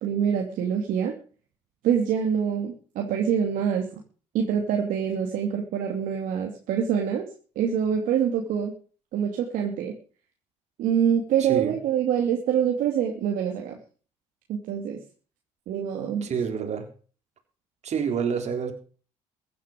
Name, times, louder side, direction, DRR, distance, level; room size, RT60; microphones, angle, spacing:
voice 1, 0.0-1.1 1.8-3.9 4.3-7.3 7.6-8.7 9.1-9.9 10.8-13.8 14.5-15.0 15.7-16.3, right 8 dB, 75° right, 2 dB, 2.6 m, -25 dB
voice 2, 11.4-11.8 16.2-16.9 17.8-18.7, right 7 dB, 55° right, 5 dB, 4.0 m, -28 dB
15.5 x 11.0 x 5.2 m, 0.39 s
supercardioid pair, 75°, 14 cm